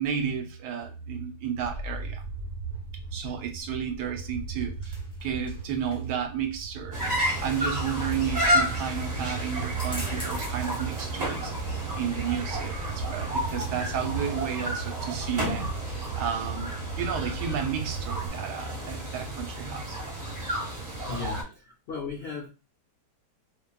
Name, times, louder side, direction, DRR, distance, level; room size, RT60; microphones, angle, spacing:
voice 1, 0.0-2.2 3.1-7.0 7.4-11.5 12.0-20.0 21.1-21.3, right 7 dB, 85° right, 1.2 m, -32 dB
sound 1, 1.6-18.3, right 5 dB, 65° right, 1.1 m, -37 dB
sound 2, 4.3-17.1, equal, 10° left, 0.3 m, -49 dB
sound 3, 6.9-21.4, equal, 30° right, 1.0 m, -31 dB
voice 2, 21.0-22.5, left 4 dB, 65° left, 0.6 m, -37 dB
2.7 x 2.5 x 2.2 m
omnidirectional pair, 1.8 m